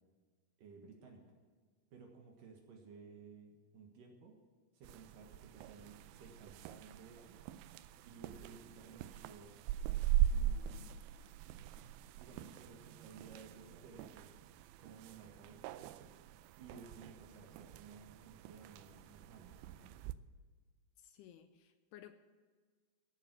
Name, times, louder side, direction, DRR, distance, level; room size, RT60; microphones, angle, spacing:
voice 1, 0.6-1.4 1.9-4.4 4.7-7.4 8.1-9.5 10.0-11.2 12.2-14.3 14.8-16.1 16.6-20.0, right 5 dB, 60° right, 1 dB, 2.8 m, -56 dB
sound 1, 4.8-20.1, right 12 dB, 85° right, 2.7 m, -41 dB
voice 2, 21.0-22.1, left 11 dB, 80° left, 9 dB, 2.4 m, -57 dB
16.0 x 7.5 x 6.2 m, 1.5 s
omnidirectional pair, 5.0 m